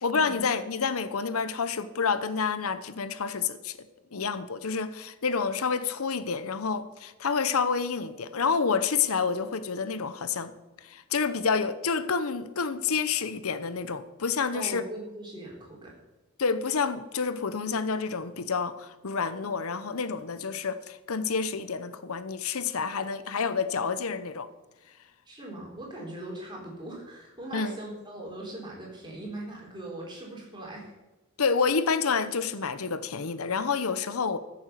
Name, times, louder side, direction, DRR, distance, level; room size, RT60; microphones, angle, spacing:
voice 1, 0.0-3.8 4.1-10.5 10.8-14.8 16.4-24.5 27.5-27.8 31.4-34.4, left 5 dB, 85° left, 13 dB, 0.8 m, -28 dB
voice 2, 14.5-15.9 25.3-30.9, right 1 dB, 20° right, -2 dB, 3.8 m, -40 dB
14.0 x 7.1 x 6.7 m, 1.1 s
head